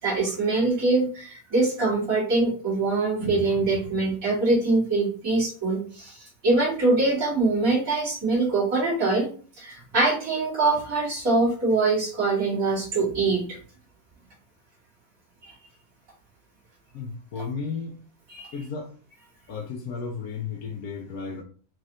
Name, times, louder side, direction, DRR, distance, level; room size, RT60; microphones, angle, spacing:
voice 1, 0.0-9.3 9.6-13.6 15.4-15.5 18.3-18.5, right 3 dB, 70° right, -8 dB, 3.2 m, -23 dB
voice 2, 16.9-18.0 18.5-18.9 19.5-21.4, left 5 dB, 75° left, 0 dB, 1.1 m, -33 dB
6.1 x 2.6 x 3.1 m, 0.40 s
omnidirectional pair, 1.5 m